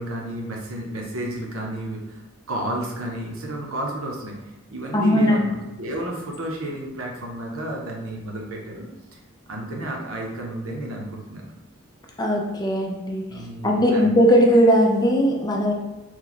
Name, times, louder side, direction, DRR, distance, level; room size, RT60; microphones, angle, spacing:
voice 1, 0.0-4.3 4.7-8.9 9.5-11.5 13.3-14.0, right 1 dB, 75° right, -1 dB, 0.7 m, -31 dB
voice 2, 4.9-5.4 12.2-15.7, equal, 20° left, 0 dB, 0.4 m, -19 dB
3.0 x 2.3 x 3.9 m, 1.1 s
head